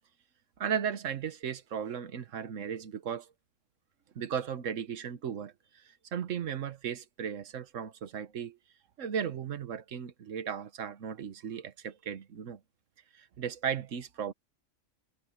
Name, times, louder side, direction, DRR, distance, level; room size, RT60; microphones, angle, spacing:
voice 1, 0.6-3.3 4.1-5.8 6.1-8.6 9.0-12.6 13.1-14.3, right 8 dB, 90° right, 1.4 m, -36 dB
omnidirectional pair, 1.3 m